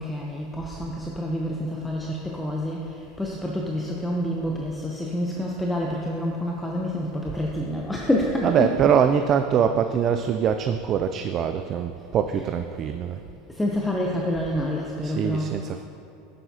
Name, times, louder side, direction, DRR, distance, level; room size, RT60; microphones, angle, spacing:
voice 1, 0.0-8.7 13.5-15.6, left 1 dB, 5° left, -2 dB, 0.7 m, -28 dB
voice 2, 8.4-13.2 15.0-15.8, right 8 dB, 40° right, 7 dB, 0.3 m, -23 dB
9.8 x 9.0 x 2.8 m, 2.7 s
supercardioid pair, 125°, 0 cm